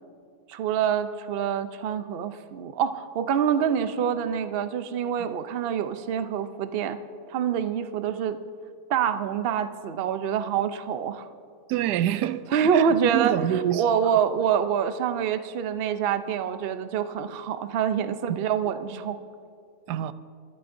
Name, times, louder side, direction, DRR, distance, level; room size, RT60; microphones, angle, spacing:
voice 1, 0.5-7.0 7.3-8.4 8.9-11.3 12.5-19.2, right 8 dB, 55° right, 0.6 m, -26 dB
voice 2, 11.7-12.5 12.7-14.1 19.9-20.1, right 11 dB, 90° right, 1.1 m, -26 dB
22.5 x 14.0 x 2.6 m
omnidirectional pair, 1.7 m